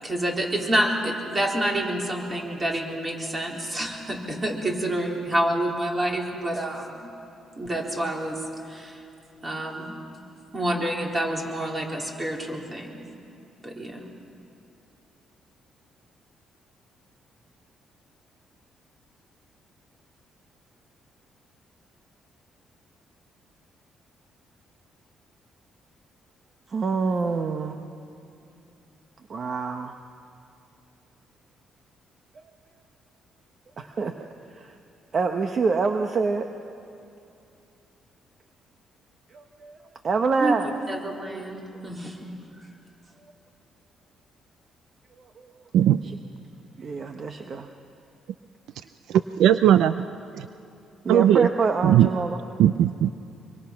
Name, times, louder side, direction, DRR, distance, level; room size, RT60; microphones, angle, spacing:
voice 1, 0.0-7.1 7.6-9.0 9.4-10.0 10.5-13.0 13.6-14.0 40.4-40.6 40.9-42.3, right 1 dB, 25° right, 0 dB, 4.0 m, -28 dB
voice 2, 26.7-27.8 29.3-29.9 33.8-34.2 34.5-34.7 35.1-36.6 39.3-39.8 40.0-40.7 45.2-45.5 46.0-46.1 46.8-47.7 51.0-52.4, right 4 dB, 45° right, 5 dB, 1.1 m, -26 dB
voice 3, 49.1-50.0 50.3-50.5 51.1-51.5 51.8-52.1 52.6-53.1, right 10 dB, 80° right, 12 dB, 0.4 m, -18 dB
24.5 x 24.0 x 6.0 m, 2.7 s
cardioid pair, 90°, 0 cm